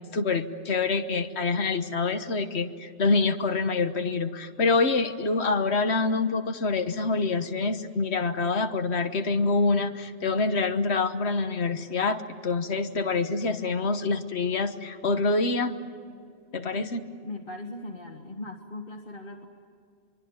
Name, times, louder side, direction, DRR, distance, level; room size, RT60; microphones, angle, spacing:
voice 1, 0.1-15.7 16.5-17.0, left 3 dB, 90° left, 8 dB, 1.5 m, -26 dB
voice 2, 17.2-19.5, left 2 dB, 55° left, 1 dB, 1.9 m, -39 dB
24.5 x 24.0 x 9.0 m, 2.2 s
omnidirectional pair, 1.1 m